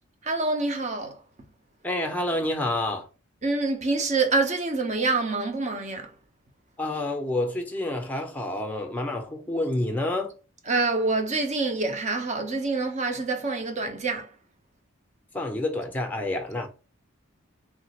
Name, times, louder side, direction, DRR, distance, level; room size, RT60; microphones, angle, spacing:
voice 1, 0.2-1.2 3.4-6.1 10.7-14.3, right 3 dB, 35° right, 0.6 m, -26 dB
voice 2, 1.8-3.1 6.8-10.3 15.3-16.7, left 1 dB, 10° left, 0.6 m, -28 dB
3.2 x 2.4 x 2.8 m
head